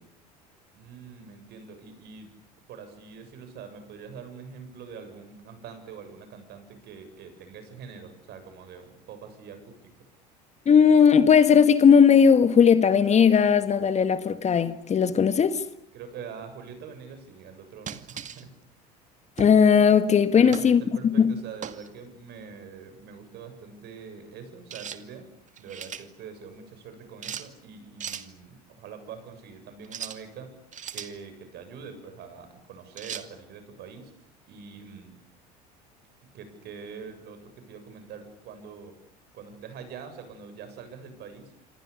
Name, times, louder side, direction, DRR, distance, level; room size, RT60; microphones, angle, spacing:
voice 1, 0.7-2.3 2.7-9.9 15.9-18.5 20.3-25.3 25.6-30.5 30.9-35.1 36.3-38.9 39.3-41.5, right 6 dB, 55° right, 7.7 m, -44 dB
voice 2, 10.6-15.6 19.4-20.8 21.2-21.3, left 7 dB, 35° left, 1.8 m, -18 dB
sound 1, 17.9-18.4 19.4-19.6 20.5-20.7 21.6-21.9 24.7-25.0 25.5-26.1 27.2-27.5 28.0-28.3 29.8-30.2 30.7-31.2 33.0-33.3, right 8 dB, 40° right, 2.3 m, -37 dB
27.5 x 26.5 x 7.0 m
hypercardioid pair, 70°, 20 cm